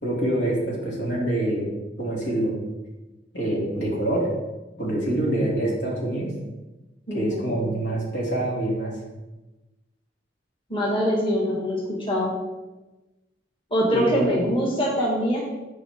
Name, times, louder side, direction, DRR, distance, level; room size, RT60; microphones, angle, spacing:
voice 1, 0.0-1.7 2.0-2.5 3.3-4.3 4.8-6.3 7.1-8.9 13.9-14.4, right 1 dB, 80° left, -4 dB, 2.6 m, -25 dB
voice 2, 7.1-7.7 10.7-11.8 12.1-12.3 13.7-15.4, equal, 30° left, -3 dB, 1.6 m, -23 dB
11.0 x 4.8 x 3.6 m, 1.1 s
head